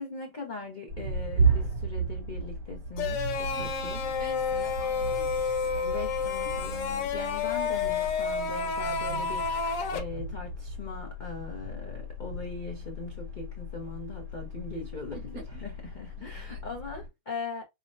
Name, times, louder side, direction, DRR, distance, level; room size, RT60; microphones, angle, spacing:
voice 1, 0.0-4.0 5.8-17.6, left 3 dB, 60° left, 0.5 m, -40 dB
sound 1, 0.9-17.1, right 3 dB, 75° right, 3.5 m, -34 dB
sound 2, 3.0-10.0, left 5 dB, 85° left, 1.4 m, -30 dB
voice 2, 3.4-5.8 15.1-15.7 16.2-16.7, right 6 dB, 60° right, 1.4 m, -49 dB
5.5 x 2.0 x 2.5 m
omnidirectional pair, 1.8 m